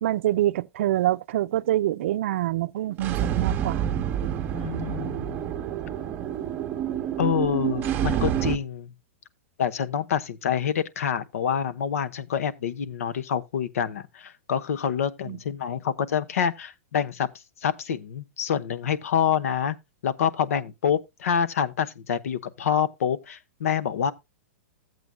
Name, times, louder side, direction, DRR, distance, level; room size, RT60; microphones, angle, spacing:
voice 1, 0.0-3.8 15.3-15.4, right 14 dB, 60° right, 0.5 m, -25 dB
sound 1, 2.9-8.6, right 10 dB, 25° right, 0.8 m, -28 dB
voice 2, 4.5-5.4 7.2-8.9 9.6-17.3 17.6-19.8 20.0-24.1, left 8 dB, 80° left, 0.9 m, -27 dB
13.5 x 8.0 x 2.2 m
hypercardioid pair, 150°, 8 cm